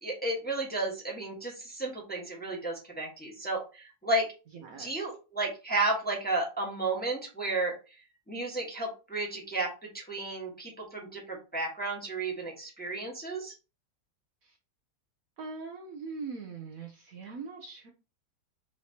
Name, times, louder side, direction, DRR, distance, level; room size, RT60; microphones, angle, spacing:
voice 1, 0.0-4.3 4.8-7.7 8.3-13.5, right 2 dB, 5° left, -2 dB, 1.1 m, -33 dB
voice 2, 4.5-5.1 14.4-14.5 15.4-17.9, right 4 dB, 65° right, 2 dB, 1.0 m, -41 dB
5.7 x 3.1 x 2.8 m, 0.31 s
omnidirectional pair, 1.9 m